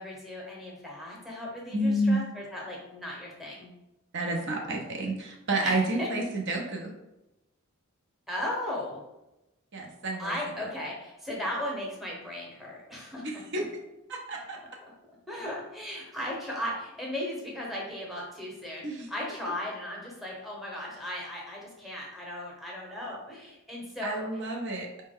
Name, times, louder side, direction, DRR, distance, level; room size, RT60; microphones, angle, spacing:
voice 1, 0.0-3.7 5.6-6.1 8.3-9.0 10.2-13.7 15.3-24.3, left 1 dB, ahead, -3 dB, 0.8 m, -36 dB
voice 2, 1.7-2.2 4.1-6.9 9.7-10.3 13.2-13.7 14.1-14.6 18.8-19.1 24.0-25.0, right 1 dB, 55° right, 1 dB, 0.6 m, -30 dB
4.3 x 2.2 x 3.5 m, 0.94 s
head